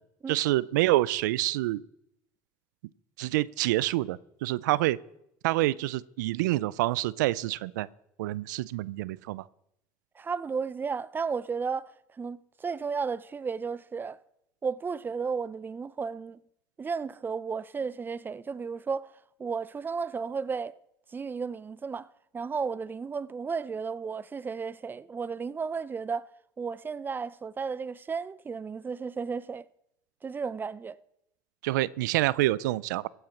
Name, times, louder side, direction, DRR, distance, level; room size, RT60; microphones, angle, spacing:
voice 1, 0.3-1.8 3.2-5.0 5.4-7.9 8.2-9.4 31.6-33.1, right 17 dB, 90° right, 0.4 m, -27 dB
voice 2, 10.2-11.9 12.2-14.2 14.6-16.4 16.8-19.1 19.4-20.8 21.1-22.1 22.3-26.2 26.6-29.6 30.2-31.0, right 5 dB, 20° right, 0.5 m, -33 dB
15.5 x 8.0 x 5.8 m
supercardioid pair, 95°, 10 cm